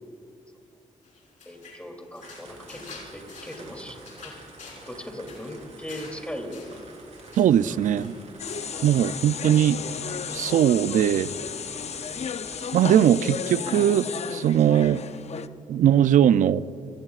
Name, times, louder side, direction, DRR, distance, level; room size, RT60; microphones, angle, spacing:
sound 1, 1.0-8.9 9.2-9.6 9.9-10.6, left 4 dB, 70° left, 4.3 m, -48 dB
voice 1, 1.4-4.3 4.9-6.8, equal, 10° left, 3 dB, 2.9 m, -39 dB
Gentle rain sound, 2.2-13.1, right 3 dB, 55° right, 4.1 m, -48 dB
voice 2, 7.4-8.1 8.8-9.8 10.3-11.3 12.7-15.0 15.7-16.7, right 10 dB, 75° right, 16 dB, 0.4 m, -20 dB
sound 2, 8.4-15.5, left 7 dB, 55° left, 0.6 m, -34 dB
26.0 x 19.0 x 2.5 m, 2.4 s
cardioid pair, 65°, 13 cm